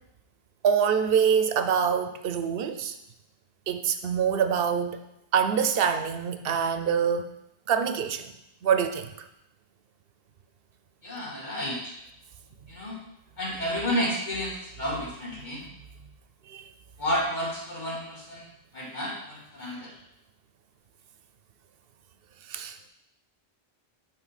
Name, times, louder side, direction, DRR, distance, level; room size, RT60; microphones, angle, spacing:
voice 1, 0.6-3.0 3.7-5.0 5.3-7.3 7.7-8.3 8.6-9.1 16.5-16.7 22.5-22.8, right 7 dB, 65° right, 9 dB, 0.8 m, -25 dB
voice 2, 11.0-11.9 12.7-13.0 13.4-15.7 17.0-18.5 18.7-20.0, equal, 45° left, -4 dB, 2.0 m, -31 dB
8.8 x 4.4 x 4.0 m, 0.82 s
omnidirectional pair, 1.1 m